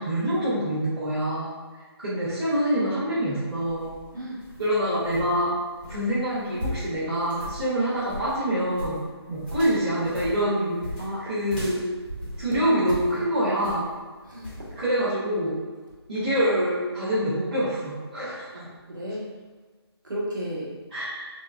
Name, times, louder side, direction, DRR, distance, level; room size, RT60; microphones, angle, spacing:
voice 1, 0.0-1.5 2.0-3.9 4.6-5.5 5.9-9.0 9.3-10.8 11.2-11.8 12.4-13.9 14.8-15.6 16.1-18.7 20.9-21.3, equal, 20° right, -14 dB, 0.6 m, -25 dB
sound 1, 3.5-13.2 13.6-14.0 14.4-14.7, left 1 dB, 20° left, 0.9 m, -38 dB
voice 2, 14.3-14.7 18.5-19.2 20.0-20.7, equal, 45° right, -6 dB, 1.1 m, -33 dB
5.7 x 2.2 x 2.4 m, 1.4 s
figure-of-eight pair, 180°, 14 cm